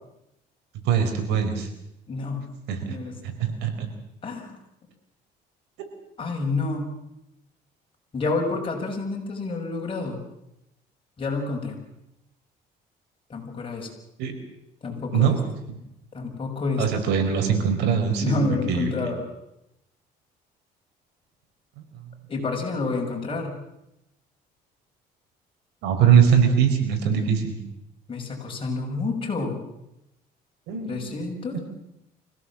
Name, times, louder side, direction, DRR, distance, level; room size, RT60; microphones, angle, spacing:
voice 1, 0.8-1.7 2.7-3.0 3.4-3.9 14.2-14.3 15.1-15.4 16.8-18.4 18.7-18.9 25.8-27.6 30.7-31.0 31.5-31.6, right 7 dB, 90° right, 5 dB, 4.8 m, -21 dB
voice 2, 2.1-2.4 2.9-3.1 4.2-4.6 6.2-6.9 8.1-10.2 11.2-11.8 13.3-13.9 14.8-15.4 16.1-16.8 18.2-19.2 22.3-23.6 28.1-29.6 30.9-31.6, left 3 dB, 30° left, 1 dB, 6.8 m, -28 dB
25.5 x 17.0 x 7.5 m, 0.85 s
cardioid pair, 110°, 17 cm